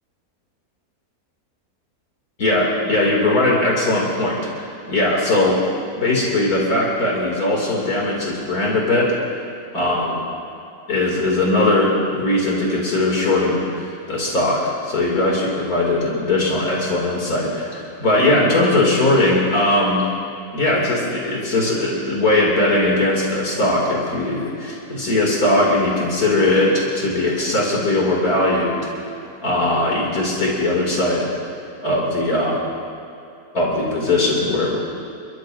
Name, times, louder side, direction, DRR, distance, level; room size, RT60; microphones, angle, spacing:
voice 1, 2.4-5.6 6.0-9.1 9.7-10.3 10.9-20.0 20.5-29.1 29.4-31.3 31.8-32.6 33.5-34.8, left 2 dB, 75° left, -4 dB, 3.3 m, -19 dB
29.0 x 14.0 x 2.7 m, 2.7 s
omnidirectional pair, 1.6 m